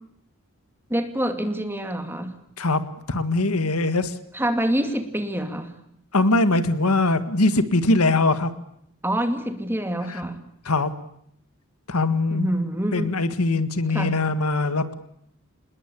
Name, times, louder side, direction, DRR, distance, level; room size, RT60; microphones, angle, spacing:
voice 1, 0.9-2.3 4.3-5.7 9.0-10.4 12.3-13.1 13.9-14.2, right 1 dB, 10° right, 6 dB, 2.5 m, -26 dB
voice 2, 3.1-4.1 6.1-8.5 10.1-10.2 10.7-10.9 11.9-12.5 12.9-14.9, left 2 dB, 85° left, 11 dB, 1.8 m, -21 dB
27.0 x 21.0 x 8.6 m, 0.72 s
head